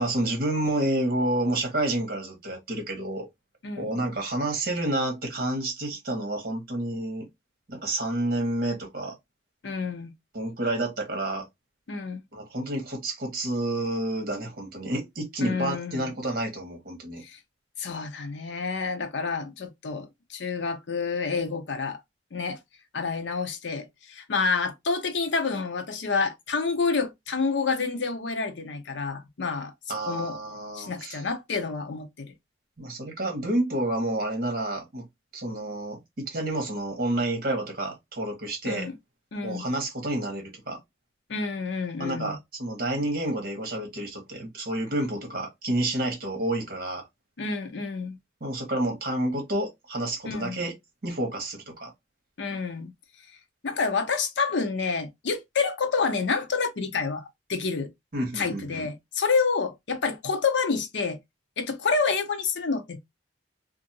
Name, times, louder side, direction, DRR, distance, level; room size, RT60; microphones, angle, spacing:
voice 1, 0.0-3.3 3.8-7.3 7.7-9.1 10.3-11.5 12.3-17.2 29.9-31.2 32.8-35.1 35.3-38.9 39.4-40.8 42.0-47.0 48.4-50.7 51.0-51.9 58.1-58.9, right 1 dB, 50° right, 1.2 m, -29 dB
voice 2, 9.6-10.1 11.9-12.2 15.4-16.1 17.2-17.4 17.8-22.0 22.3-22.6 22.9-29.7 30.1-30.4 30.7-32.3 38.6-38.9 39.3-39.6 41.3-42.4 47.4-48.2 50.2-50.6 52.4-52.9 53.6-57.9 58.3-61.2 61.6-63.0, left 4 dB, 75° left, 0.6 m, -28 dB
2.6 x 2.5 x 2.7 m
head